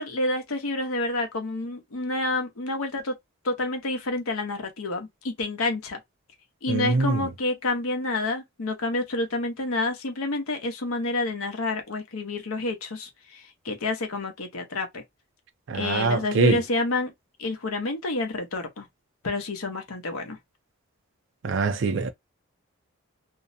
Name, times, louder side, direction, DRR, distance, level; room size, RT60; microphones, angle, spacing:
voice 1, 0.0-3.2 3.4-6.0 6.6-15.0 15.7-17.1 17.4-18.9 19.2-20.4, left 2 dB, 75° left, 0.7 m, -29 dB
voice 2, 6.7-7.2 15.7-16.6 21.4-22.1, right 3 dB, 55° right, 0.4 m, -23 dB
2.5 x 2.0 x 2.6 m
head